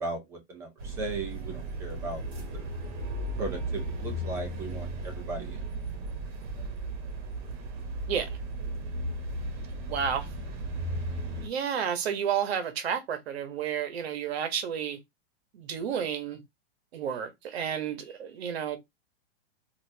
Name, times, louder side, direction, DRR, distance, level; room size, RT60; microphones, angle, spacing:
voice 1, 0.0-2.2 2.5-2.7 3.3-5.7, right 3 dB, 10° right, 0.3 m, -37 dB
sound 1, 0.8-11.5, right 1 dB, 50° right, 1.2 m, -35 dB
voice 2, 9.9-10.3 11.4-15.0 15.5-16.4 16.9-18.8, right 8 dB, 70° right, 0.9 m, -31 dB
3.9 x 2.5 x 2.6 m
hypercardioid pair, 155°, 33 cm